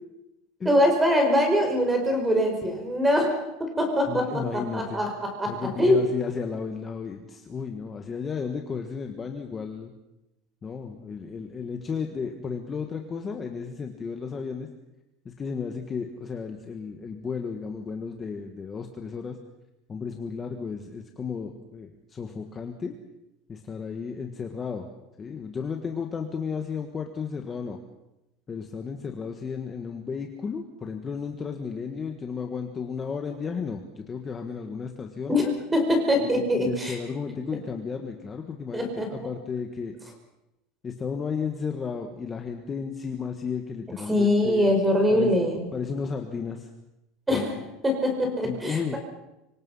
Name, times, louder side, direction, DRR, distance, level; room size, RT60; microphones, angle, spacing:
voice 1, 0.6-6.0 35.3-37.0 38.7-39.3 44.0-45.7 47.3-49.0, left 1 dB, 10° right, 4 dB, 5.1 m, -23 dB
voice 2, 4.1-5.0 5.5-9.9 10.6-14.7 15.2-19.4 19.9-22.9 23.5-24.9 25.2-27.8 28.5-35.4 36.2-39.9 40.8-44.7 45.1-45.3 45.7-46.7 47.3-47.6 48.4-49.0, left 5 dB, 20° left, 3 dB, 1.6 m, -33 dB
25.5 x 24.5 x 5.6 m, 0.92 s
cardioid pair, 170°, 0 cm